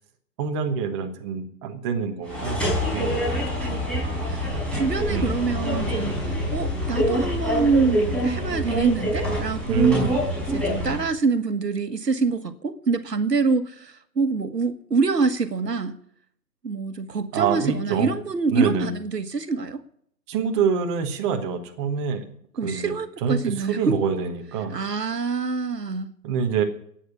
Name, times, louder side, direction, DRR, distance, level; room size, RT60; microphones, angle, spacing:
voice 1, 0.4-3.2 5.1-5.3 9.7-10.2 17.3-18.1 18.5-18.9 20.3-22.2 22.6-22.9 23.2-24.8 26.2-26.6, right 6 dB, 15° right, 1.2 m, -26 dB
sound 1, 2.2-11.1, equal, ahead, 5.3 m, -25 dB
voice 2, 4.3-10.2 10.5-16.0 16.6-19.8 22.6-24.0 24.7-26.1, right 4 dB, 80° right, 1.5 m, -26 dB
11.0 x 9.2 x 9.8 m
figure-of-eight pair, 140°, 49 cm